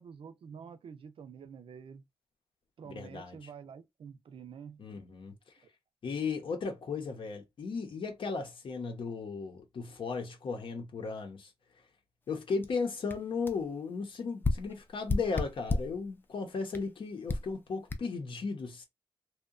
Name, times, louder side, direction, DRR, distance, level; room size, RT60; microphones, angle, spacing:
voice 1, 0.0-2.0 2.8-4.8, right 6 dB, 80° right, 0.5 m, -48 dB
voice 2, 2.8-3.4 4.8-5.3 6.0-11.5 12.3-18.8, left 4 dB, 70° left, 0.7 m, -36 dB
sound 1, 12.6-12.7 13.1-13.2 13.5-13.6 14.4-16.0 16.7-16.9 17.3-17.5 17.9-18.0, left 3 dB, 20° left, 0.3 m, -32 dB
2.7 x 2.1 x 2.4 m
wide cardioid pair, 155°, 9 cm